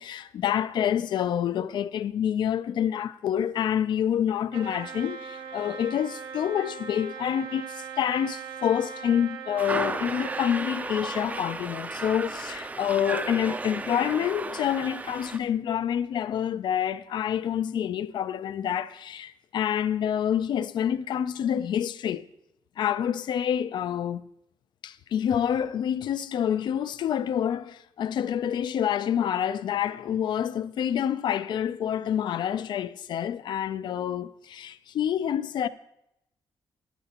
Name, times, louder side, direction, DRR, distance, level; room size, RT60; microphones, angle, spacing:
voice 1, 0.0-22.2 22.8-24.2 24.8-35.7, left 9 dB, 60° left, 0.4 m, -27 dB
Trumpet, 4.5-10.6, right 7 dB, 75° right, 1.0 m, -40 dB
sound 1, 9.6-15.4, right 3 dB, 15° right, 0.4 m, -34 dB
12.0 x 10.5 x 2.9 m
wide cardioid pair, 160°, 9 cm